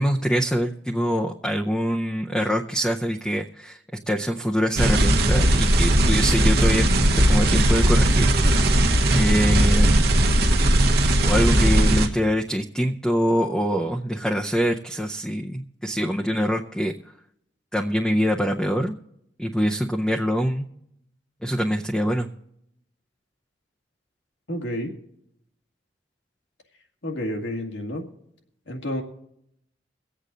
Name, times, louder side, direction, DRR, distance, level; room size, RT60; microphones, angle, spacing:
voice 1, 0.0-3.8 4.1-8.3 9.1-10.1 11.2-16.9 17.7-18.9 19.4-20.7 21.4-22.3, equal, 5° left, 1 dB, 0.6 m, -24 dB
sound 1, 4.8-12.1, right 1 dB, 60° right, 1.1 m, -18 dB
voice 2, 24.5-24.9 27.0-28.0 28.7-29.0, left 1 dB, 85° left, 2 dB, 2.0 m, -29 dB
23.0 x 8.3 x 3.9 m, 0.75 s
head